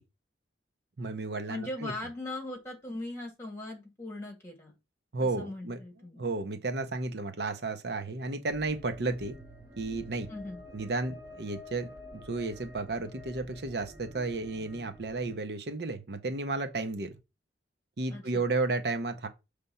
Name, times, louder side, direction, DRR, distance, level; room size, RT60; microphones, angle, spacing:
voice 1, 1.0-1.9 5.1-5.8 6.2-9.4 9.8-10.3 10.7-17.1 18.0-19.3, right 3 dB, 60° right, 0.8 m, -33 dB
voice 2, 1.5-4.7 5.2-6.2 10.3-10.6 18.1-18.5, left 1 dB, 15° left, 2.0 m, -39 dB
sound 1, 8.5-15.3, left 1 dB, 20° right, 1.9 m, -49 dB
6.6 x 3.4 x 5.5 m
head